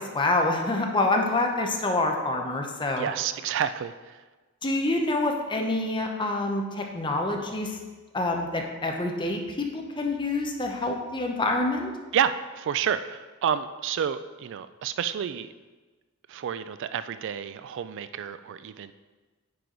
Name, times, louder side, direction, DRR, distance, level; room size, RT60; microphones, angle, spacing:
voice 1, 0.0-3.1 4.6-7.8 8.1-11.9, left 2 dB, 20° left, 2 dB, 0.9 m, -27 dB
voice 2, 3.0-4.2 12.1-15.5 16.3-18.9, right 8 dB, 60° right, 12 dB, 0.3 m, -29 dB
9.6 x 4.7 x 3.9 m, 1.3 s
head